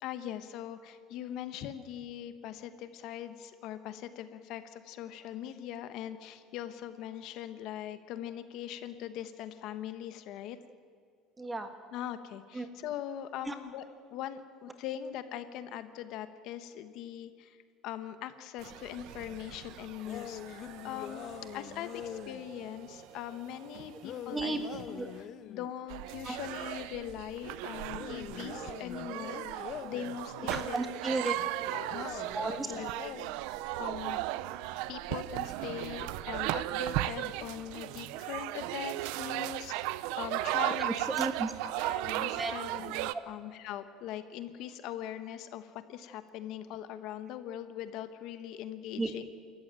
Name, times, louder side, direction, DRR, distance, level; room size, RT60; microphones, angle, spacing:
voice 1, 0.0-10.6 11.9-13.8 14.1-25.0 25.5-30.8 31.7-32.2 32.7-33.1 33.5-34.2 34.6-41.1 41.6-49.2, left 11 dB, 55° left, 11 dB, 1.1 m, -41 dB
voice 2, 11.4-11.7 12.5-12.7 13.4-13.6 24.3-24.6 24.9-25.1 26.2-26.4 30.4-31.4 32.3-32.7 40.8-41.5 42.3-42.5 43.1-43.2 48.9-49.1, right 2 dB, 10° right, 7 dB, 1.5 m, -34 dB
sound 1, 18.6-25.3, right 11 dB, 55° right, 1.1 m, -51 dB
sound 2, 20.0-22.4 24.0-25.7 27.9-30.1 31.9-33.5, left 11 dB, 40° left, 0.5 m, -44 dB
sound 3, 25.9-43.1, right 16 dB, 75° right, 0.7 m, -35 dB
26.5 x 14.5 x 9.0 m, 2.2 s
cardioid pair, 175°, 0 cm